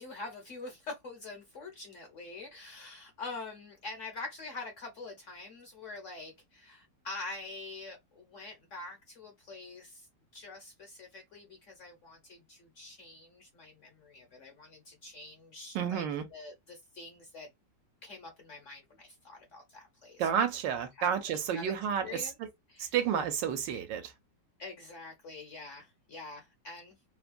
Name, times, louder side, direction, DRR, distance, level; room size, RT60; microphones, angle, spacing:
voice 1, 0.0-10.1 10.3-16.0 16.3-17.5 18.0-20.3 21.0-21.1 21.5-21.7 22.0-22.3 22.7-22.9 24.6-27.0, left 3 dB, 55° left, 0.9 m, -45 dB
voice 2, 15.7-16.3 20.2-22.3 22.8-24.1, right 8 dB, 75° right, 1.3 m, -31 dB
3.2 x 2.1 x 2.4 m
omnidirectional pair, 2.0 m